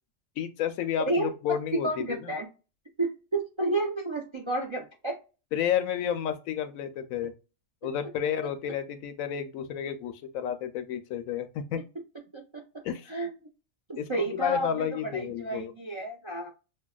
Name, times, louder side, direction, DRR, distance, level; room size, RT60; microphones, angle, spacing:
voice 1, 0.4-2.3 5.5-7.3 7.8-11.8 12.8-13.1 14.0-15.7, left 9 dB, 85° left, 1.0 m, -31 dB
voice 2, 1.8-2.5 3.0-5.2 12.3-12.6 13.1-13.3 13.9-16.5, right 2 dB, 45° right, 0.4 m, -31 dB
5.4 x 2.2 x 2.3 m
omnidirectional pair, 1.4 m